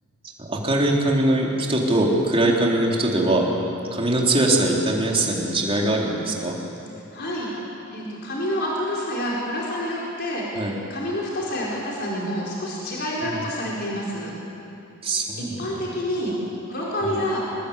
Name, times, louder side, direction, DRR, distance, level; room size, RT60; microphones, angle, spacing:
voice 1, 0.4-3.5 3.9-6.6 10.6-10.8 13.2-13.4 15.0-15.9 17.0-17.2, right 1 dB, 25° right, -2 dB, 3.7 m, -22 dB
voice 2, 7.1-7.5 7.9-14.3 15.4-16.3 16.7-17.4, equal, 50° left, -5 dB, 4.6 m, -28 dB
26.0 x 20.5 x 8.5 m, 2.9 s
head